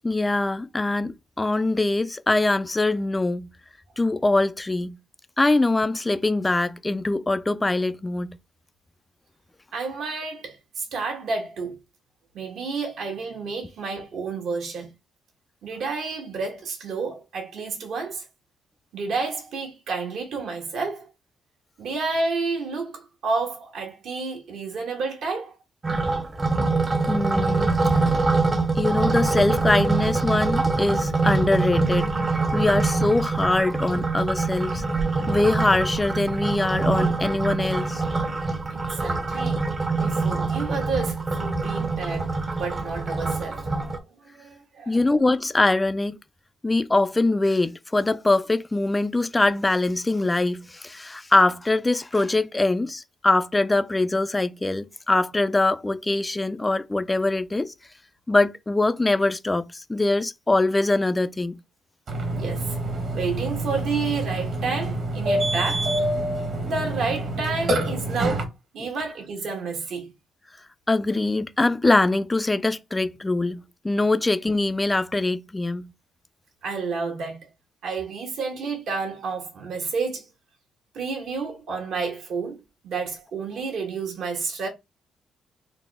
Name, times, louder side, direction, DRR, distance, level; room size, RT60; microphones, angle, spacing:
voice 1, 0.0-1.1 1.4-3.5 4.0-5.0 5.4-8.4 27.1-27.7 28.8-32.1 32.5-34.8 35.3-38.0 44.9-46.2 46.6-57.7 58.3-61.6 70.9-75.9, left 2 dB, 15° left, 0.3 m, -23 dB
voice 2, 9.7-11.8 12.3-14.9 15.6-18.3 18.9-21.1 21.8-25.5 38.7-39.6 40.0-42.3 42.6-45.0 62.3-62.8 63.1-65.9 66.6-68.5 68.7-70.1 76.6-77.5 77.8-80.2 80.9-84.7, right 4 dB, 70° right, 1.5 m, -30 dB
sound 1, 25.8-44.0, right 3 dB, 30° right, 0.7 m, -24 dB
Burping eructation, 62.1-68.4, right 1 dB, 55° right, 1.5 m, -27 dB
4.0 x 2.0 x 3.5 m
cardioid pair, 90°, 0 cm